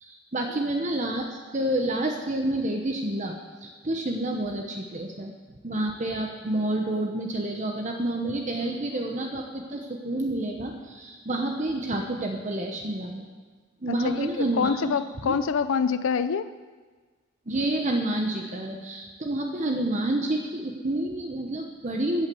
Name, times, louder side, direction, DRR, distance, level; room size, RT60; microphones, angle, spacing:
voice 1, 0.0-1.3 1.5-5.3 5.6-13.3 13.8-14.9 15.2-15.4 17.5-22.3, right 1 dB, 40° right, 2 dB, 1.0 m, -29 dB
voice 2, 13.9-16.5, left 6 dB, 90° left, 13 dB, 0.5 m, -26 dB
16.0 x 8.6 x 7.0 m, 1.4 s
head